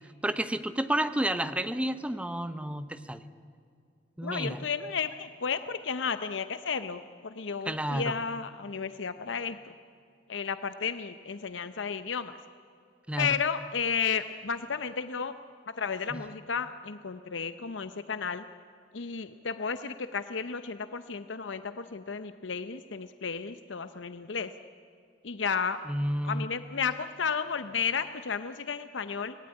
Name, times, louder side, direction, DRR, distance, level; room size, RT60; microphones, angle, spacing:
voice 1, 0.2-3.2 4.2-4.6 7.7-8.2 13.1-13.3 16.1-16.2 25.9-26.5, right 1 dB, 5° right, 11 dB, 0.9 m, -31 dB
voice 2, 4.2-9.6 10.3-12.4 13.2-15.3 15.8-18.4 18.9-24.5 25.2-25.8 26.2-29.4, left 6 dB, 85° left, 11 dB, 0.8 m, -33 dB
25.5 x 19.0 x 9.8 m, 2.4 s
head